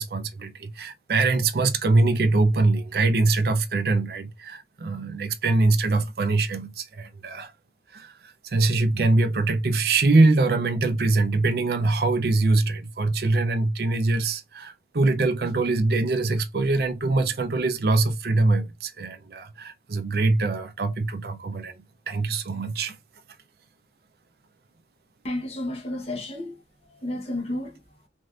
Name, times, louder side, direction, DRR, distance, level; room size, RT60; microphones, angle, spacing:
voice 1, 0.0-7.5 7.9-21.7 22.1-23.0, right 3 dB, 55° right, 0.5 m, -23 dB
voice 2, 25.2-26.6 26.9-27.8, left 1 dB, 35° left, 1.0 m, -31 dB
3.2 x 2.6 x 2.4 m
head